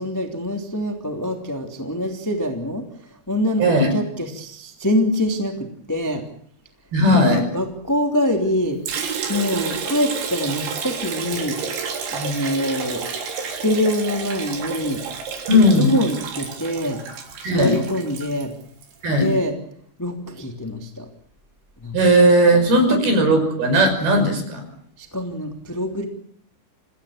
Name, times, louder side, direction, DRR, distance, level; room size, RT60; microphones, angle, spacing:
voice 1, 0.0-2.8 3.3-3.6 3.9-6.2 7.1-8.8 9.3-11.6 12.1-13.0 13.5-15.0 15.5-17.0 17.4-18.5 19.1-19.5 20.0-21.1 21.8-22.0 22.9-23.1 25.0-26.0, left 1 dB, 5° left, 3 dB, 1.5 m, -24 dB
voice 2, 3.6-3.9 6.9-7.4 15.5-15.9 17.4-17.8 19.0-19.3 21.9-24.6, equal, 50° right, 7 dB, 7.3 m, -16 dB
Liquid, 8.9-19.0, right 6 dB, 65° right, 5.6 m, -30 dB
27.5 x 16.0 x 8.7 m, 0.63 s
omnidirectional pair, 5.7 m